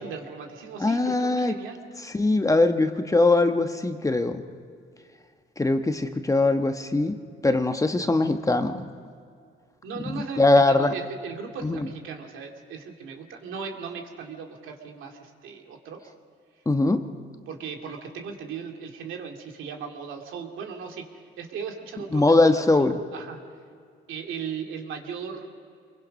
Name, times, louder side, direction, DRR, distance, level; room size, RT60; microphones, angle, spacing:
voice 1, 0.0-1.8 9.8-16.0 17.5-21.0 21.4-22.6 23.1-23.4 24.1-25.5, right 6 dB, 80° right, 2 dB, 2.4 m, -37 dB
voice 2, 0.8-1.6 2.0-4.4 5.6-7.2 7.4-8.9 10.0-10.9 11.6-11.9 16.7-17.0 22.1-23.0, left 2 dB, 15° left, 7 dB, 1.1 m, -21 dB
26.5 x 22.5 x 5.4 m, 2.3 s
cardioid pair, 90°, 20 cm